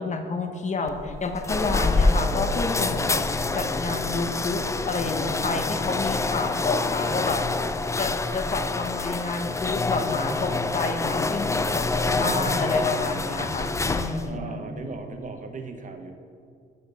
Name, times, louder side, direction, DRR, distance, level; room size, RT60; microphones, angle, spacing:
voice 1, 0.0-7.4 8.0-11.9 12.1-14.6, left 3 dB, 35° left, 6 dB, 0.9 m, -29 dB
sound 1, 0.9-14.4, left 3 dB, 15° left, 0.4 m, -26 dB
voice 2, 11.9-12.8 14.2-16.1, right 3 dB, 40° right, 6 dB, 1.0 m, -36 dB
6.8 x 5.1 x 6.8 m, 2.3 s
cardioid pair, 90°, 20 cm